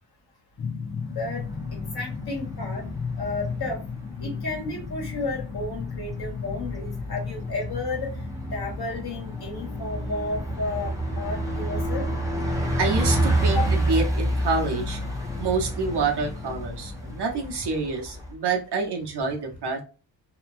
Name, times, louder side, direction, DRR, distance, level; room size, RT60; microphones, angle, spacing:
sound 1, 0.6-17.6, left 5 dB, 30° left, 0.4 m, -37 dB
Bus, 1.2-18.3, right 1 dB, 10° right, 0.6 m, -30 dB
voice 1, 1.7-2.8 3.2-3.8 4.2-8.1 8.5-12.1 13.5-13.7, left 3 dB, 60° left, -1 dB, 1.3 m, -32 dB
voice 2, 12.8-15.0 15.4-19.8, right 4 dB, 65° right, 2 dB, 0.8 m, -27 dB
2.9 x 2.2 x 2.4 m, 0.34 s
wide cardioid pair, 135°, 44 cm